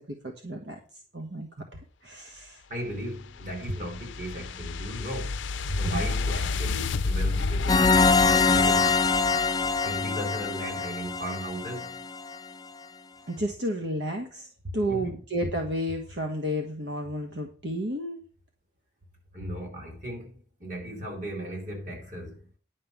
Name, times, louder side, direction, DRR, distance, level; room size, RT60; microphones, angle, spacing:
voice 1, 0.0-1.5 2.0-2.6 5.8-6.1 13.3-14.5 14.7-18.2, equal, 65° right, 1.4 m, -32 dB
voice 2, 2.7-5.4 5.7-8.9 9.8-12.0 14.8-15.1 19.3-22.5, equal, 45° right, 4.9 m, -36 dB
sound 1, 2.9-10.2, left 3 dB, 90° left, 0.6 m, -31 dB
sound 2, 7.7-12.4, left 4 dB, 20° left, 0.4 m, -24 dB
10.5 x 5.5 x 7.2 m
head